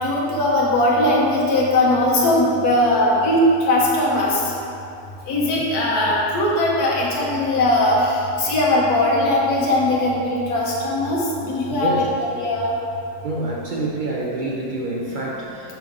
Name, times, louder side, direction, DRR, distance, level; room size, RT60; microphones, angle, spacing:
voice 1, 0.0-4.4 5.3-12.0 12.4-12.7, left 1 dB, 75° left, -4 dB, 1.5 m, -19 dB
voice 2, 11.7-12.1 13.2-15.8, right 2 dB, 60° right, -4 dB, 0.5 m, -27 dB
5.6 x 5.1 x 3.9 m, 2.7 s
omnidirectional pair, 1.6 m